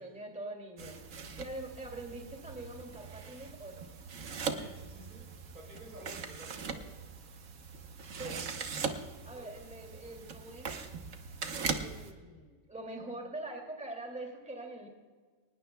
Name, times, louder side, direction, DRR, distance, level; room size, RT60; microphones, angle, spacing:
voice 1, 0.0-3.9 8.2-8.4 9.2-10.7 11.7-14.9, right 2 dB, 5° right, 1 dB, 2.4 m, -44 dB
sound 1, 0.8-12.1, right 5 dB, 55° right, 1.3 m, -41 dB
voice 2, 4.5-5.3 5.5-7.0 9.3-9.6, right 1 dB, 85° right, -2 dB, 5.1 m, -52 dB
23.5 x 19.5 x 2.3 m, 1.5 s
omnidirectional pair, 1.6 m